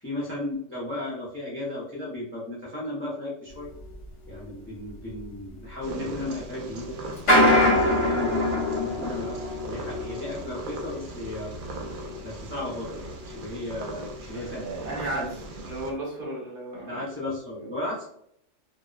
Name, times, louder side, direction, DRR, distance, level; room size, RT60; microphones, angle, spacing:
voice 1, 0.0-3.7 4.3-7.0 7.5-9.4 9.6-11.5 12.2-12.9 13.2-14.7 15.1-15.3 16.7-18.1, left 1 dB, 20° left, -7 dB, 0.4 m, -35 dB
sound 1, 3.8-3.9 4.3-4.4 5.0-5.2 5.9-6.1 7.1-13.4 14.0-14.2 14.4-14.5 15.0-15.1 15.7-15.8, left 1 dB, 55° left, 0.9 m, -25 dB
Purr, 5.8-15.9, right 1 dB, 65° right, 0.5 m, -40 dB
voice 2, 14.3-15.2 15.6-17.0 17.6-17.7, right 2 dB, 50° right, -5 dB, 0.9 m, -34 dB
2.6 x 2.0 x 2.3 m, 0.72 s
omnidirectional pair, 1.3 m